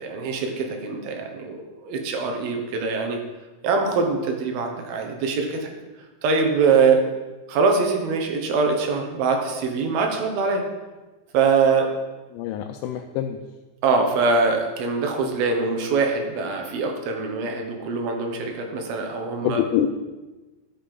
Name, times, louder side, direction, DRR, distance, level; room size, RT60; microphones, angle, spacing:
voice 1, 0.0-3.2 3.6-5.7 6.2-7.0 7.5-10.6 11.3-11.9 13.8-19.6, right 4 dB, 70° right, 3 dB, 2.4 m, -23 dB
voice 2, 12.3-13.4 19.4-19.9, left 11 dB, 85° left, 4 dB, 3.0 m, -25 dB
13.0 x 5.4 x 5.3 m, 1.2 s
omnidirectional pair, 5.7 m